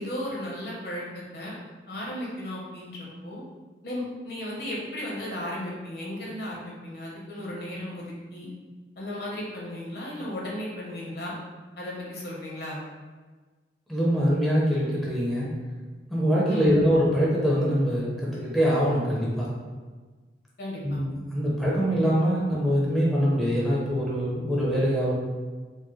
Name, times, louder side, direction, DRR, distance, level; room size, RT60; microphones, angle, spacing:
voice 1, 0.0-1.5 1.9-3.4 3.8-8.5 9.0-11.3 11.8-12.8 16.5-16.8 20.6-21.0, left 1 dB, 60° left, -4 dB, 1.0 m, -35 dB
voice 2, 13.9-15.5 16.1-19.5 20.8-25.1, equal, ahead, -7 dB, 0.6 m, -24 dB
4.6 x 2.1 x 3.1 m, 1.4 s
head